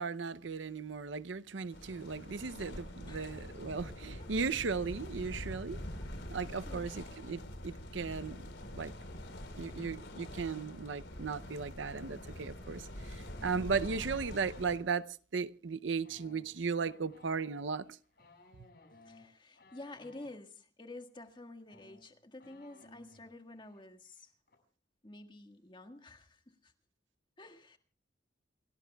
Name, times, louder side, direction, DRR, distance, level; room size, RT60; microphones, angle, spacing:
voice 1, 0.0-5.8 6.3-8.4 8.8-8.9 9.6-15.0 15.3-17.9, right 5 dB, 75° right, 0.6 m, -36 dB
sound 1, 1.7-14.8, left 1 dB, 70° left, 4.3 m, -45 dB
voice 2, 3.0-3.6 4.2-4.3 6.0-6.3 6.7-6.9 19.1-24.3 25.0-26.7 27.4-27.8, left 2 dB, 25° left, 1.7 m, -50 dB
sound 2, 13.3-14.7 16.0-20.3 21.3-21.4 21.6-23.3 23.5-23.8 24.1-24.6, left 2 dB, 55° left, 6.1 m, -60 dB
28.5 x 18.0 x 2.3 m
head